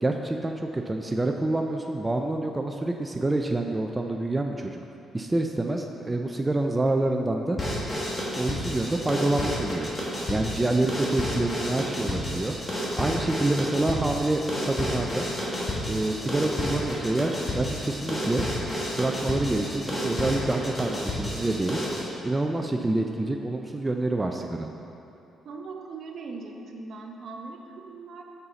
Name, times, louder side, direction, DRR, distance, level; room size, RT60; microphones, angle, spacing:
voice 1, 0.0-4.8 5.1-7.8 8.4-9.9 10.3-12.5 13.0-15.3 15.9-18.5 19.0-21.8 22.2-24.7, right 2 dB, 15° right, 3 dB, 0.3 m, -27 dB
sound 1, 7.6-22.1, left 1 dB, 25° left, 1.4 m, -31 dB
voice 2, 25.4-28.2, right 3 dB, 60° right, 2 dB, 0.6 m, -40 dB
5.6 x 5.5 x 4.0 m, 2.9 s
cardioid pair, 90°, 0 cm